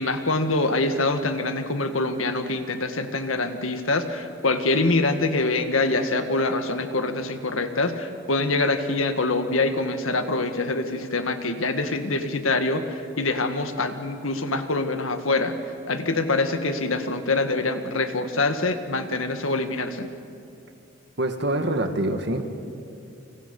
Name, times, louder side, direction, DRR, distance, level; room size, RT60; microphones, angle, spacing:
voice 1, 0.0-15.6 15.9-20.1, left 2 dB, 85° left, 8 dB, 1.8 m, -25 dB
voice 2, 21.2-22.4, right 1 dB, 55° right, 6 dB, 2.0 m, -25 dB
30.0 x 26.0 x 5.5 m, 2.6 s
head